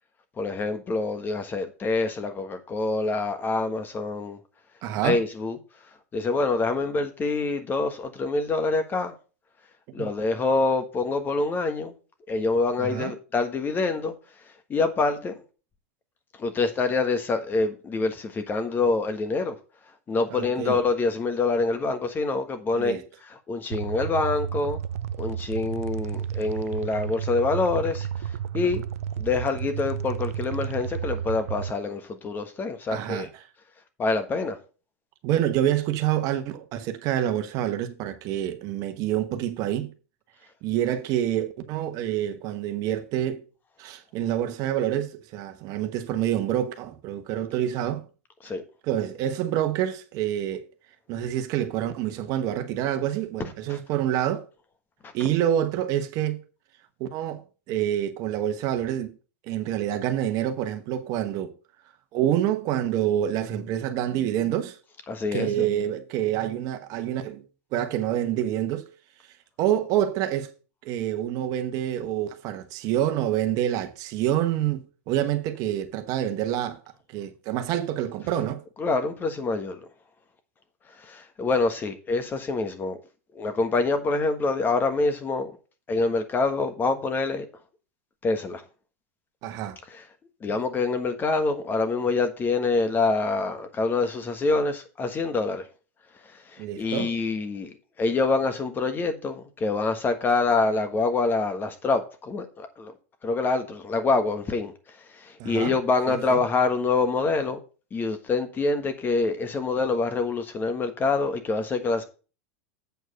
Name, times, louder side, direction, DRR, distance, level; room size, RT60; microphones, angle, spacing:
voice 1, 0.4-4.4 5.0-5.6 6.1-9.1 9.9-11.9 12.3-14.1 14.7-15.3 16.4-19.6 20.1-23.0 23.5-24.8 25.2-28.1 28.5-28.8 29.2-33.3 34.0-34.6 48.4-48.6 65.1-65.5 78.8-79.8 81.0-83.0 83.3-85.5 85.9-87.5 88.2-88.6 89.9-90.0 90.4-95.6 96.5-102.9 103.2-104.7 105.2-107.6 107.9-112.0, left 3 dB, 25° left, 1.3 m, -26 dB
voice 2, 4.8-5.2 10.0-10.1 12.8-13.1 20.3-20.8 22.7-23.0 32.9-33.4 35.2-39.9 40.6-43.4 43.8-48.0 48.8-50.7 51.1-54.5 55.1-56.4 57.0-59.1 59.5-61.5 62.1-64.8 65.3-67.4 67.7-68.9 69.6-70.5 70.8-76.8 77.1-78.6 89.4-89.8 90.5-90.6 96.6-97.1 105.4-105.7 106.1-106.4, right 11 dB, 50° right, 1.2 m, -27 dB
sound 1, 23.7-31.7, right 9 dB, 80° right, 0.4 m, -32 dB
8.0 x 4.7 x 6.6 m
hypercardioid pair, 105°, 8 cm